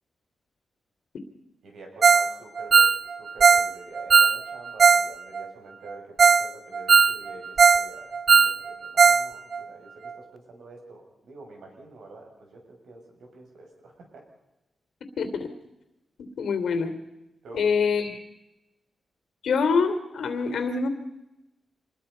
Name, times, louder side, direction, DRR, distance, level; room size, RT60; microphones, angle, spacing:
voice 1, 1.6-14.3 17.4-17.7, right 2 dB, 85° right, 2 dB, 7.0 m, -46 dB
Ringtone, 2.0-2.3 2.6-5.1 5.4-5.5 5.9-6.0 6.2-6.5 6.7-7.9 8.1-9.3 9.5-9.6 10.1-10.2, right 6 dB, 55° right, 0.8 m, -18 dB
voice 2, 15.2-15.5 16.4-16.9 17.5-18.2 19.4-20.9, left 5 dB, 80° left, 9 dB, 3.0 m, -25 dB
26.0 x 21.5 x 5.6 m, 0.95 s
wide cardioid pair, 110°, 0 cm